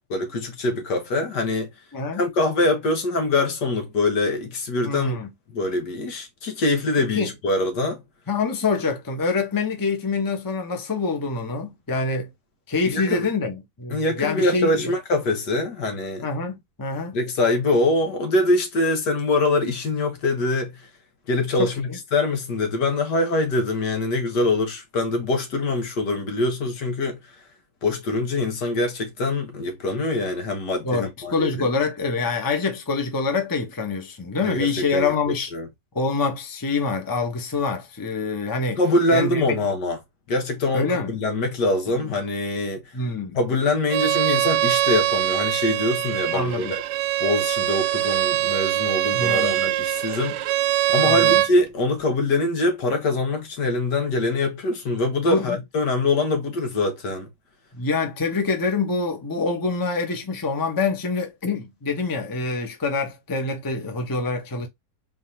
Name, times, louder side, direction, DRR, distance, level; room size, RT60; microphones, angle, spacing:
voice 1, 0.1-1.7 2.2-5.2 5.5-8.0 12.9-13.3 13.9-16.3 17.1-20.9 21.3-27.3 27.8-31.7 34.4-35.1 35.5-35.7 38.8-40.0 40.3-42.8 43.4-46.8 47.2-50.5 50.9-57.3, left 2 dB, 75° left, 1.9 m, -24 dB
voice 2, 4.8-5.3 7.1-7.3 8.3-12.3 12.7-14.9 16.2-17.1 21.6-22.0 30.8-35.5 35.9-38.8 39.1-39.6 40.7-41.1 41.9-42.1 42.9-43.4 46.3-46.7 49.1-49.6 51.0-51.4 55.3-55.6 57.7-64.7, left 4 dB, 15° left, 0.8 m, -26 dB
Bowed string instrument, 43.9-51.5, right 14 dB, 85° right, 1.2 m, -22 dB
4.1 x 3.8 x 2.8 m
omnidirectional pair, 1.8 m